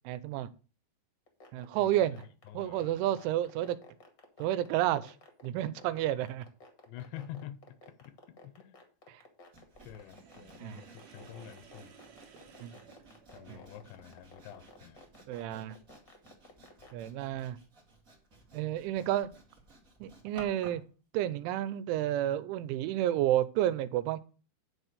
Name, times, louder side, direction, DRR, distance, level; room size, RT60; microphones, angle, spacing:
voice 1, 0.1-0.5 1.5-2.2 2.5-3.8 4.4-5.1 5.4-6.5 10.6-10.8 12.6-12.7 13.5-13.6 15.3-15.8 16.9-17.6 18.5-19.3 20.0-20.8 21.1-24.2, right 12 dB, 90° right, 3.1 m, -30 dB
sound 1, 1.3-16.9, left 4 dB, 50° left, 1.3 m, -54 dB
voice 2, 2.5-3.2 6.9-8.1 8.4-8.8 9.9-12.0 13.3-15.0, left 11 dB, 80° left, 2.8 m, -47 dB
Sawing, 9.5-20.9, right 2 dB, 40° right, 1.1 m, -56 dB
Sink (filling or washing), 9.9-13.8, right 7 dB, 65° right, 2.2 m, -57 dB
10.0 x 4.5 x 6.6 m
omnidirectional pair, 5.3 m